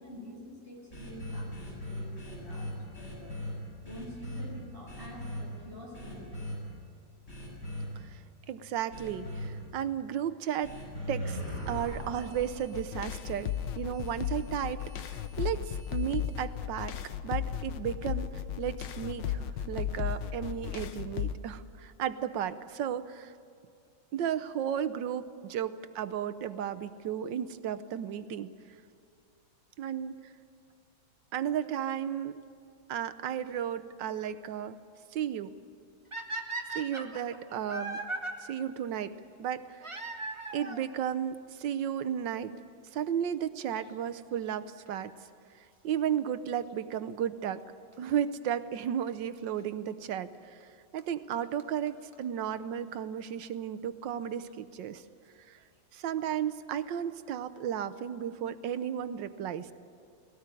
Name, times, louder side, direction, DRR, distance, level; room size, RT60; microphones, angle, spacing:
voice 1, 0.0-3.4 3.8-6.4, left 1 dB, 30° left, -3 dB, 7.1 m, -47 dB
sound 1, 0.9-3.5 3.8-4.4 4.9-5.4 5.9-6.6 7.3-7.8 8.9-9.5 10.6-16.5, left 1 dB, 50° left, 8.6 m, -40 dB
voice 2, 8.5-10.8 11.1-11.4 11.7-17.0 17.2-18.3 18.6-23.3 24.1-28.5 29.8-30.2 31.3-32.4 32.9-34.8 35.1-35.5 36.7-38.0 38.4-39.1 39.4-39.8 40.5-42.5 42.9-45.1 45.8-47.6 48.0-50.6 50.9-55.0 55.5-55.6 55.9-59.7, right 9 dB, 85° right, 12 dB, 1.5 m, -34 dB
sound 2, 12.7-21.3, left 10 dB, 90° left, 1.6 m, -35 dB
sound 3, 36.1-38.3 39.8-40.9 41.8-41.9 42.6-42.7 42.9-43.0 44.9-45.1 47.9-48.0 49.1-49.2 50.6-50.7 51.0-51.1 51.3-51.4 51.6-51.7 51.9-52.0 52.1-52.2 52.4-52.5, right 2 dB, 15° right, 1.5 m, -37 dB
19.5 x 17.5 x 9.7 m, 2.4 s
omnidirectional pair, 1.9 m